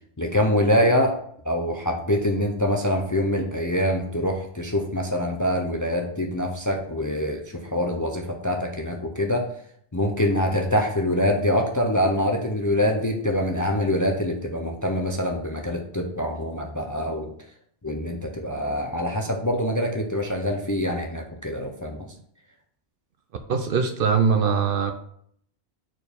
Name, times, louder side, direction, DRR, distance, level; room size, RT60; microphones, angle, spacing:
voice 1, 0.2-1.1 1.4-9.5 9.9-17.3 17.8-22.1, left 1 dB, 25° left, 3 dB, 0.4 m, -24 dB
voice 2, 23.5-24.9, right 6 dB, 60° right, 8 dB, 0.7 m, -21 dB
4.5 x 4.5 x 5.2 m, 0.65 s
omnidirectional pair, 1.2 m